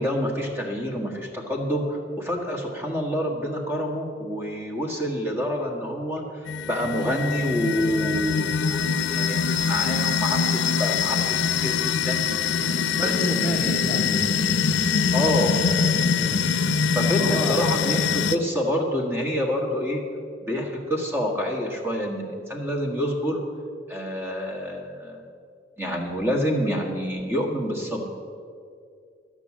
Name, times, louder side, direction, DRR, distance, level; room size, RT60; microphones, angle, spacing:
voice 1, 0.0-12.3 13.0-13.8 15.1-15.5 15.9-16.0 16.6-20.0 20.4-23.4 23.9-25.2 25.8-28.0, equal, 15° right, 0 dB, 1.5 m, -27 dB
sound 1, 6.5-18.4, left 6 dB, 90° left, 0.5 m, -24 dB
voice 2, 12.9-14.7 16.1-16.5 17.2-17.6, equal, 10° left, -3 dB, 0.9 m, -30 dB
13.0 x 6.1 x 7.3 m, 2.3 s
head